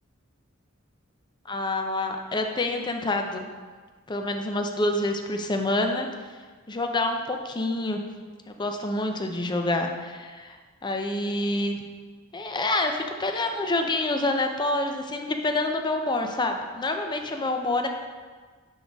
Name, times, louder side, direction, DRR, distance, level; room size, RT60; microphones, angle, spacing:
voice 1, 1.5-3.5 4.1-6.1 6.7-8.0 8.5-11.8 12.3-17.9, left 2 dB, 20° left, 4 dB, 0.5 m, -27 dB
10.0 x 3.9 x 3.5 m, 1.5 s
head